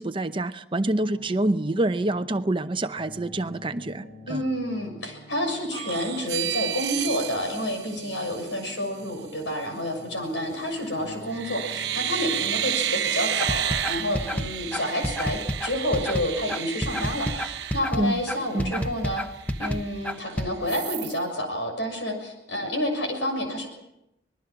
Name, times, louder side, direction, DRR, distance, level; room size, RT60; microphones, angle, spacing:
voice 1, 0.0-4.4 18.0-18.2 18.5-18.9, right 1 dB, 25° right, 9 dB, 0.7 m, -27 dB
sound 1, 1.0-12.7, left 1 dB, 55° left, 7.5 m, -48 dB
voice 2, 4.3-19.2 19.6-23.7, left 1 dB, 75° left, 4 dB, 6.6 m, -29 dB
sound 2, 5.7-8.7 10.6-10.9 11.3-18.6 19.0-19.1 19.4-20.3 20.7-21.2, right 11 dB, 60° right, 0.9 m, -31 dB
sound 3, 13.4-20.5, equal, 5° left, 0.9 m, -29 dB
25.5 x 20.5 x 6.0 m, 0.85 s
head